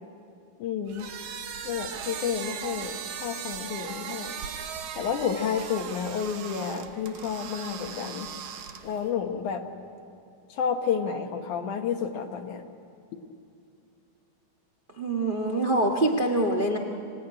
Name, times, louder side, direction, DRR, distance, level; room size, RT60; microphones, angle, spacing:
voice 1, 0.6-1.1 1.6-4.4 4.9-8.3 8.8-9.6 10.5-12.6, left 7 dB, 65° left, 5 dB, 2.5 m, -30 dB
sound 1, 0.9-9.1, right 7 dB, 70° right, 1.4 m, -38 dB
voice 2, 15.0-16.8, right 1 dB, 50° right, 1 dB, 0.6 m, -24 dB
26.5 x 17.0 x 9.9 m, 2.5 s
omnidirectional pair, 4.1 m